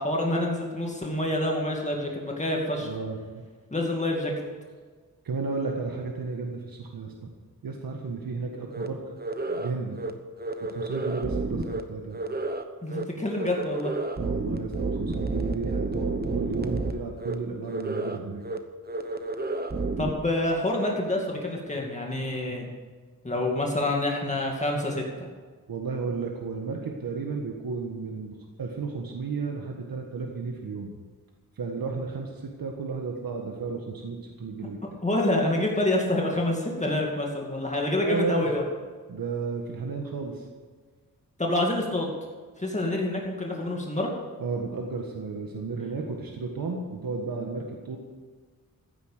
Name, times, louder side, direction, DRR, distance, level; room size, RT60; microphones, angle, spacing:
voice 1, 0.0-2.9 3.7-4.3 12.8-13.9 20.0-22.7 23.2-25.0 35.0-38.6 41.4-42.1 42.6-44.1, left 1 dB, 20° left, -1 dB, 2.3 m, -27 dB
voice 2, 2.8-3.2 5.2-7.3 7.6-9.0 9.5-10.0 10.6-12.2 14.2-18.4 25.7-30.9 31.6-34.8 38.0-38.5 39.1-40.5 44.4-48.0, right 4 dB, 80° right, 1 dB, 1.7 m, -33 dB
sound 1, 8.7-8.9 9.2-9.7 10.0-10.1 10.4-11.8 12.1-12.6 12.9-13.0 13.3-16.9 17.2-17.3 17.7-18.2 18.4-18.6 18.9-20.1, right 3 dB, 25° right, 1.1 m, -30 dB
15.5 x 9.5 x 6.8 m, 1.5 s
wide cardioid pair, 120°, 34 cm